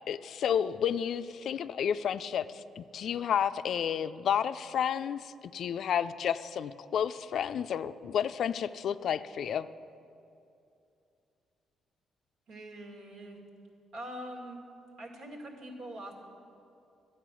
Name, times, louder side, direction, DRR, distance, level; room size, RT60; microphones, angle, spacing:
voice 1, 0.1-9.7, left 8 dB, 65° left, 13 dB, 0.4 m, -31 dB
voice 2, 12.5-13.4 13.9-14.6 15.0-16.1, right 1 dB, 80° right, 0 dB, 2.1 m, -43 dB
12.5 x 8.4 x 6.2 m, 2.6 s
cardioid pair, 90°, 0 cm